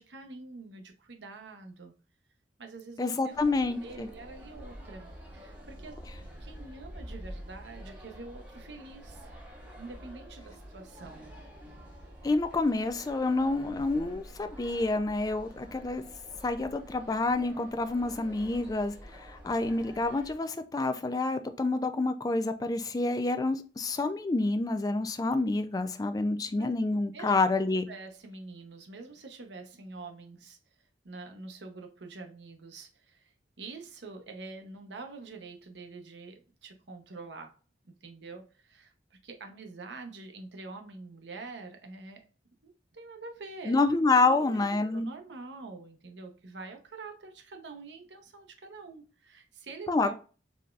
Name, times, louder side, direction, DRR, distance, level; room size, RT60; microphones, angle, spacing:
voice 1, 0.0-1.9 2.6-5.1 5.3-5.9 6.4-9.3 9.8-11.3 26.6-26.7 27.1-27.3 27.9-30.6 31.0-37.5 37.8-42.3 42.6-43.8 44.3-50.2, right 3 dB, 85° right, 0.8 m, -46 dB
voice 2, 3.0-4.1 12.2-16.0 16.4-27.9 43.7-45.1 49.9-50.2, left 3 dB, 20° left, 0.3 m, -28 dB
sound 1, 3.3-20.3, equal, 10° right, 1.0 m, -47 dB
4.0 x 3.3 x 2.3 m
head